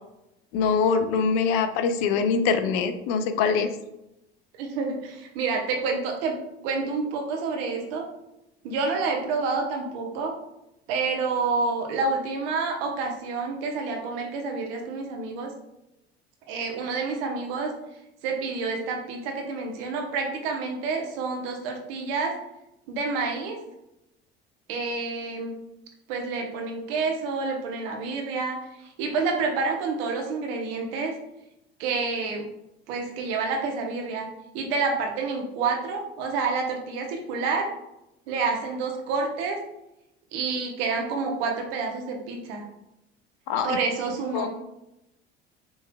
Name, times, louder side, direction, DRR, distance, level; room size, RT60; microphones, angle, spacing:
voice 1, 0.5-3.7 43.5-43.8 44.3-44.5, left 5 dB, 60° left, 9 dB, 0.6 m, -23 dB
voice 2, 4.6-6.4 6.6-8.0 8.6-10.3 10.9-15.5 16.5-17.7 18.2-22.3 22.9-23.6 24.7-25.6 26.1-31.1 31.8-32.4 32.9-34.3 34.5-37.7 38.3-39.6 40.3-42.6 43.6-44.5, right 4 dB, 65° right, 2 dB, 1.0 m, -28 dB
5.4 x 3.2 x 2.3 m, 0.89 s
hypercardioid pair, 65°, 32 cm